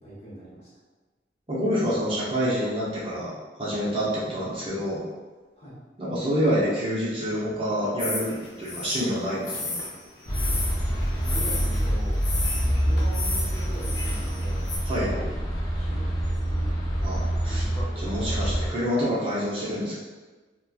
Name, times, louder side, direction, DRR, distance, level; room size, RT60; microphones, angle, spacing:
voice 1, 0.0-0.7 5.6-5.8 10.8-12.2 12.6-14.7 15.0-15.4 15.7-16.7, right 1 dB, 35° left, -8 dB, 0.9 m, -41 dB
voice 2, 1.5-3.3 3.6-5.0 6.0-9.7 14.8-15.1 17.0-17.6 18.0-20.0, equal, 30° right, -8 dB, 0.6 m, -27 dB
sound 1, 8.0-14.8, left 2 dB, 80° left, 0.6 m, -34 dB
sound 2, 10.3-18.7, equal, 20° left, 0.4 m, -26 dB
2.9 x 2.2 x 2.3 m, 1.3 s
head